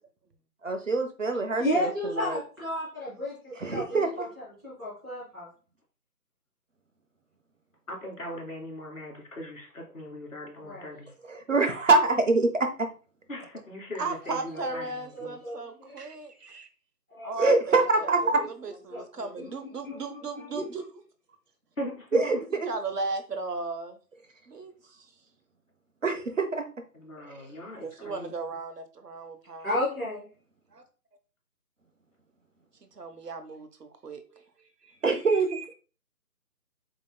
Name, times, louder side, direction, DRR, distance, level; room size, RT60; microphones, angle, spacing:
voice 1, 0.6-2.4 3.5-4.3 11.3-12.7 17.4-18.2 22.1-22.4 22.6-22.7 26.0-26.6 27.3-27.4 35.0-35.5, right 3 dB, 50° right, 6 dB, 0.7 m, -24 dB
voice 2, 1.6-3.3 3.6-4.3 4.6-5.5 10.6-10.8 14.8-15.6 15.9-16.0 17.1-17.3 18.2-18.4 18.9-20.6 29.6-30.2, left 1 dB, ahead, -14 dB, 1.5 m, -33 dB
voice 3, 7.9-11.1 13.3-15.4 21.8-22.4 26.9-28.3, equal, 55° left, -3 dB, 2.3 m, -39 dB
voice 4, 14.0-16.7 17.2-18.3 18.6-20.8 22.6-24.0 24.5-25.1 27.8-29.7 30.7-30.8 32.8-34.4 34.8-35.7, right 3 dB, 75° right, 8 dB, 1.0 m, -36 dB
7.6 x 2.9 x 2.2 m, 0.37 s
figure-of-eight pair, 175°, 48 cm